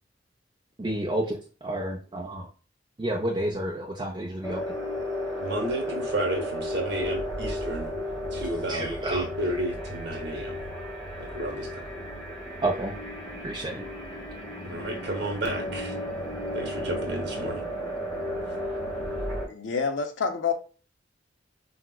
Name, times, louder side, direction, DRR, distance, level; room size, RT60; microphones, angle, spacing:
voice 1, 0.8-2.5 3.0-4.6 8.4-9.6 12.6-12.9 13.4-13.8, right 1 dB, 25° right, -2 dB, 0.4 m, -30 dB
sound 1, 4.4-19.5, left 1 dB, ahead, 1.0 m, -34 dB
voice 2, 5.4-7.9 8.3-10.6 11.2-11.9 14.6-15.9 16.5-17.6, right 1 dB, 60° right, 2 dB, 1.0 m, -32 dB
voice 3, 19.5-20.5, left 5 dB, 75° left, 6 dB, 0.6 m, -27 dB
4.5 x 2.0 x 2.2 m, 0.38 s
head